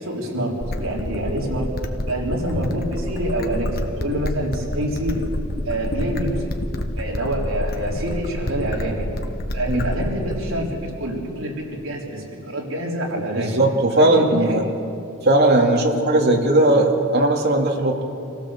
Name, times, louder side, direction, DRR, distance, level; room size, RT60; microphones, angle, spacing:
voice 1, 0.0-1.7 2.1-5.2 5.6-6.5 7.0-9.1 9.5-13.6 14.0-14.6, right 1 dB, 75° right, -2 dB, 3.9 m, -26 dB
sound 1, 0.6-10.6, left 1 dB, 45° left, 1.2 m, -28 dB
voice 2, 13.3-14.6 15.2-18.0, right 1 dB, 50° right, 0 dB, 2.6 m, -18 dB
26.0 x 16.0 x 7.3 m, 2.6 s
head